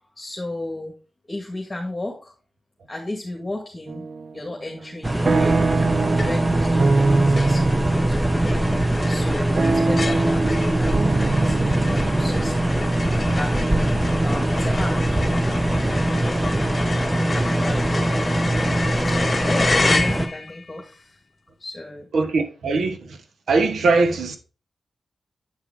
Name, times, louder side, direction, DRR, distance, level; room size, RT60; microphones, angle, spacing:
voice 1, 0.2-0.9 1.3-2.3 2.9-4.1 4.3-5.8 6.1-8.6 9.1-12.9 13.3-15.4 17.3-18.2 19.5-21.2 21.6-22.1, left 2 dB, 25° left, 1.9 m, -34 dB
sound 1, 3.9-4.4 4.8-14.8, right 3 dB, 60° right, 0.5 m, -24 dB
sound 2, 5.0-20.3, right 1 dB, 15° right, 1.1 m, -22 dB
sound 3, 6.2-6.6 7.0-7.1 7.4-20.6, left 3 dB, 40° left, 0.9 m, -30 dB
voice 2, 22.1-23.2 23.5-24.4, right 3 dB, 85° right, 1.1 m, -21 dB
8.8 x 4.7 x 3.7 m
cardioid pair, 70°, 0 cm